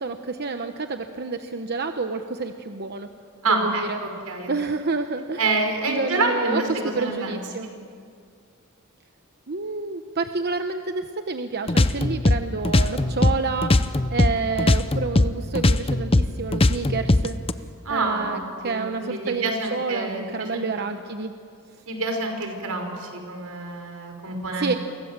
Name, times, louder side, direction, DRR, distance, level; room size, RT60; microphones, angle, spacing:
voice 1, 0.0-3.1 3.5-4.0 4.5-5.4 5.9-7.7 9.5-17.3 17.9-21.3 24.6-24.8, right 4 dB, 45° right, 7 dB, 0.9 m, -29 dB
voice 2, 3.4-4.5 5.4-7.7 12.7-13.1 17.9-20.6 21.9-24.8, right 3 dB, 85° right, 3 dB, 5.2 m, -27 dB
sound 1, 11.7-14.3 14.6-17.5, left 2 dB, 25° left, 0.7 m, -19 dB
29.5 x 24.5 x 7.5 m, 2.3 s
head